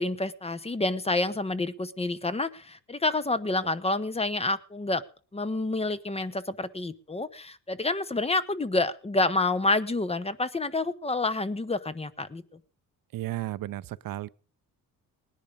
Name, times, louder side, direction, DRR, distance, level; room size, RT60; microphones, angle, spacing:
voice 1, 0.0-5.0 5.3-12.4, left 2 dB, 15° left, 0.8 m, -28 dB
voice 2, 13.1-14.3, right 15 dB, 70° right, 0.6 m, -34 dB
19.5 x 10.5 x 5.2 m
cardioid pair, 110°, 36 cm